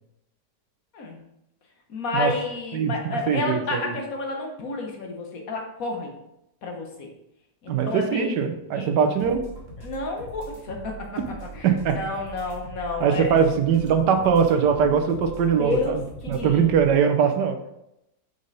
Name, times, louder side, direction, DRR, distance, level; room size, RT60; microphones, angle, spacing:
voice 1, 1.9-6.1 6.6-7.1 7.6-8.3 8.7-8.9 9.8-10.9 11.5-11.7 11.9-13.3 15.6-16.7, left 3 dB, 60° left, 1 dB, 1.4 m, -30 dB
voice 2, 3.3-4.0 7.7-9.4 11.6-12.0 13.0-17.6, right 7 dB, 85° right, 6 dB, 1.4 m, -21 dB
sound 1, 9.2-16.9, right 3 dB, 30° right, 1.5 m, -41 dB
5.5 x 5.0 x 4.0 m, 0.85 s
omnidirectional pair, 1.8 m